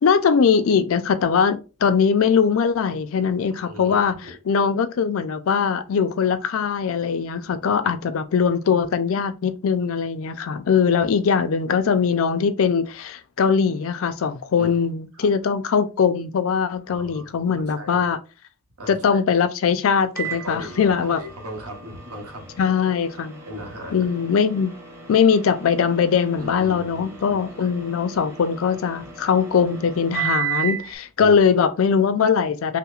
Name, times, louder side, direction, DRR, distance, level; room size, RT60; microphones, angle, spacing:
voice 1, 0.0-4.2 4.5-18.2 18.9-21.2 22.6-23.4 23.9-24.7 25.1-32.8, left 6 dB, 65° left, 0.4 m, -21 dB
voice 2, 3.5-4.3 14.6-14.7 15.1-15.3 16.9-17.3 17.6-18.0 18.8-19.2 20.4-22.5 23.5-24.0 26.3-27.7 31.2-31.4, equal, 90° right, 1.1 m, -38 dB
Microwave oven, 20.2-30.9, right 9 dB, 10° right, 0.7 m, -34 dB
5.7 x 2.1 x 2.4 m
head